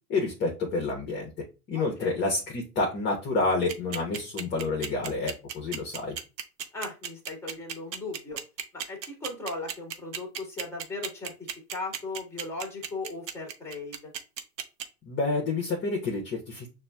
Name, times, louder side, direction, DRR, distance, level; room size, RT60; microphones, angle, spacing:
voice 1, 0.1-1.3 1.7-6.2 15.0-16.7, left 3 dB, 20° left, 0 dB, 0.9 m, -29 dB
voice 2, 1.7-2.2 6.7-8.4 8.7-11.3 11.7-14.1, left 3 dB, 5° left, 1 dB, 1.5 m, -37 dB
sound 1, 3.5-14.8, right 9 dB, 80° right, 0.9 m, -34 dB
6.7 x 2.7 x 2.3 m, 0.30 s
hypercardioid pair, 125°, 50 cm